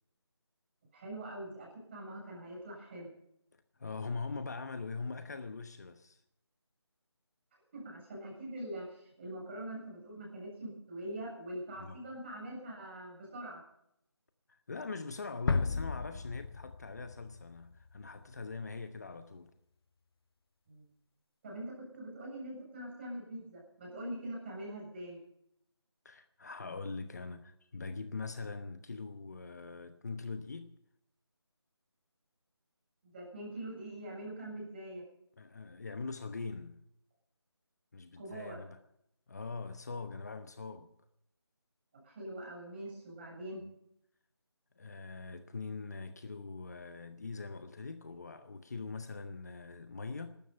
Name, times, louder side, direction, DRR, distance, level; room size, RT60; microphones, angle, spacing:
voice 1, 0.9-3.1 7.7-13.6 20.7-20.8 21.4-25.2 33.0-35.0 38.2-38.6 41.9-43.6, right 1 dB, 25° right, 7.5 m, -43 dB
voice 2, 3.8-6.2 11.8-12.0 14.5-19.5 26.0-30.7 35.4-36.8 37.9-38.8 39.3-40.9 44.8-50.3, left 4 dB, 40° left, 1.0 m, -42 dB
sound 1, 15.5-18.3, left 4 dB, 60° left, 0.6 m, -34 dB
18.5 x 12.5 x 5.5 m
figure-of-eight pair, 170°, 14 cm